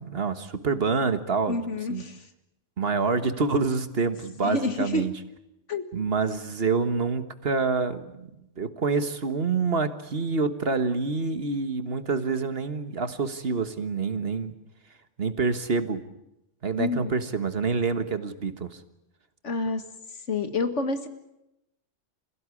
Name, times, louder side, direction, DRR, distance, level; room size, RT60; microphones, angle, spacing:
voice 1, 0.0-1.6 1.9-2.0 2.8-5.1 5.9-8.2 8.6-14.5 15.2-16.0 16.6-18.8, right 4 dB, 55° right, 10 dB, 1.6 m, -27 dB
voice 2, 1.5-2.2 4.4-5.0 5.7-5.9 16.8-17.1 19.4-19.8 20.3-21.1, left 3 dB, 80° left, 9 dB, 2.1 m, -28 dB
27.0 x 16.0 x 9.8 m, 0.89 s
omnidirectional pair, 1.2 m